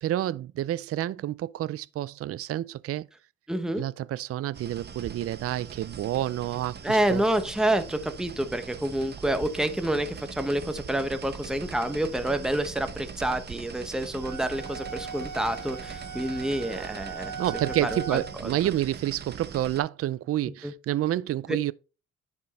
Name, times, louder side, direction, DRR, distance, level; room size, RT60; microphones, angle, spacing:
voice 1, 0.0-3.1 3.8-7.2 17.4-21.7, right 13 dB, 50° right, 0.4 m, -29 dB
voice 2, 3.5-3.8 6.8-17.3 17.8-18.5 20.5-20.7, right 1 dB, ahead, 0.9 m, -28 dB
sound 1, 4.5-19.8, right 6 dB, 35° right, 0.8 m, -42 dB
sound 2, 14.2-18.4, right 5 dB, 70° right, 1.2 m, -39 dB
10.5 x 4.5 x 4.1 m
cardioid pair, 90°, 30 cm